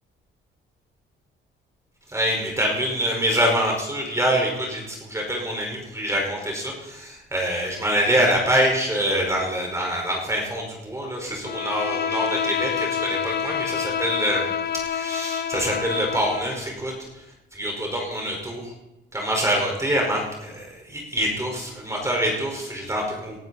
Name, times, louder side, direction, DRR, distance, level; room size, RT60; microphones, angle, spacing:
voice 1, 2.1-16.9 17.5-18.6 19.1-23.4, equal, 15° right, 0 dB, 4.9 m, -25 dB
Bowed string instrument, 11.4-16.6, left 8 dB, 55° left, 0.9 m, -28 dB
19.0 x 12.0 x 4.2 m, 0.95 s
cardioid pair, 90°, 20 cm